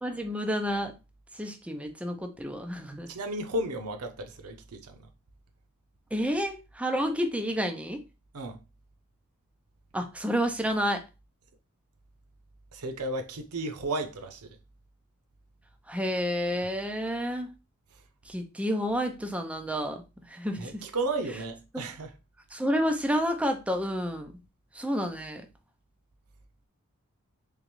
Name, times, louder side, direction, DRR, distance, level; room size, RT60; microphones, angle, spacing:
voice 1, 0.0-0.9 1.4-3.1 6.1-8.0 9.9-11.0 15.9-17.5 18.3-20.0 20.3-20.8 22.5-24.3 24.7-25.4, equal, 5° right, 0.5 m, -30 dB
voice 2, 3.1-5.1 8.3-8.6 12.7-14.6 20.6-22.1, right 1 dB, 90° right, 0.7 m, -34 dB
3.7 x 3.1 x 3.0 m
head